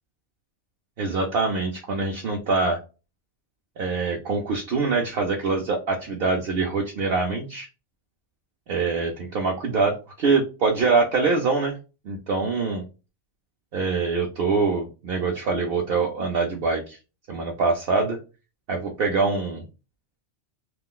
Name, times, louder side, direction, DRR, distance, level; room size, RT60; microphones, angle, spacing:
voice 1, 1.0-2.8 3.8-7.7 8.7-11.8 12.0-12.8 13.7-17.0 17.3-18.2 18.7-19.6, right 4 dB, 60° right, 1 dB, 0.7 m, -24 dB
2.4 x 2.3 x 3.6 m, 0.32 s
omnidirectional pair, 1.2 m